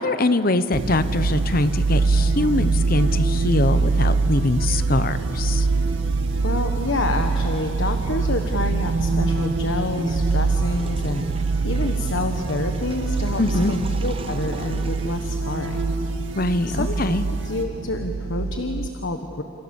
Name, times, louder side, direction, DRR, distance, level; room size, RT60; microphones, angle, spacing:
voice 1, 0.0-5.7 13.4-13.7 16.3-17.2, left 2 dB, 45° left, 12 dB, 1.0 m, -23 dB
sound 1, 0.7-17.6, right 2 dB, 60° right, 2.4 m, -33 dB
sound 2, 0.7-18.9, right 4 dB, 90° right, 0.7 m, -24 dB
voice 2, 6.4-11.2 11.6-15.9 16.7-17.0 17.3-19.4, left 2 dB, 65° left, 5 dB, 1.4 m, -28 dB
Water / Toilet flush, 9.9-16.1, right 2 dB, 25° right, 0.9 m, -42 dB
29.5 x 27.5 x 7.1 m, 2.8 s
head